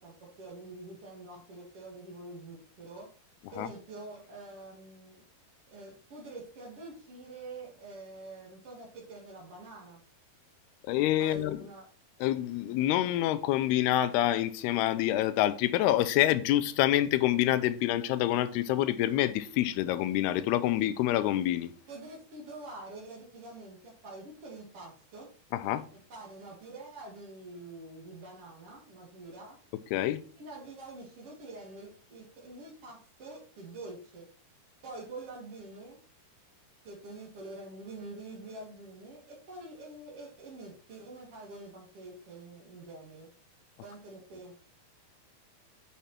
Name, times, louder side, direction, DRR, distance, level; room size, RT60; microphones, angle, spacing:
voice 1, 0.0-5.2 5.7-10.0 11.2-11.9 21.9-25.3 26.1-29.6 30.4-34.3 34.8-36.0 36.8-43.3 43.8-44.6, right 2 dB, 40° right, 2.7 m, -46 dB
voice 2, 10.9-11.6 12.2-21.7 25.5-25.8 29.9-30.2, left 13 dB, 85° left, 2.6 m, -27 dB
10.0 x 6.1 x 4.4 m
omnidirectional pair, 4.8 m